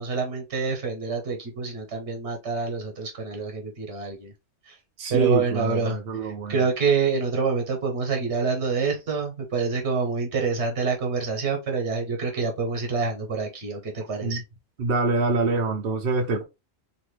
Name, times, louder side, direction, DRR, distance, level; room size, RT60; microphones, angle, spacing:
voice 1, 0.0-4.3 4.7-4.8 5.1-14.4, right 4 dB, 70° right, 1.4 m, -27 dB
voice 2, 5.0-6.6 14.2-14.4 14.8-16.4, right 3 dB, 55° right, 0.8 m, -25 dB
2.9 x 2.6 x 3.2 m
omnidirectional pair, 1.2 m